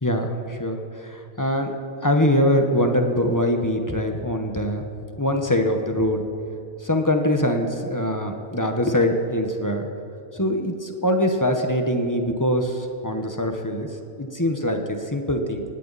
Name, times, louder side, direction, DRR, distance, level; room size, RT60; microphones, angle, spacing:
voice 1, 0.0-1.7 2.0-4.8 5.2-6.2 6.8-9.9 10.3-13.9 14.2-15.6, left 1 dB, 15° left, 4 dB, 1.0 m, -23 dB
18.0 x 16.5 x 4.1 m, 2.6 s
omnidirectional pair, 1.4 m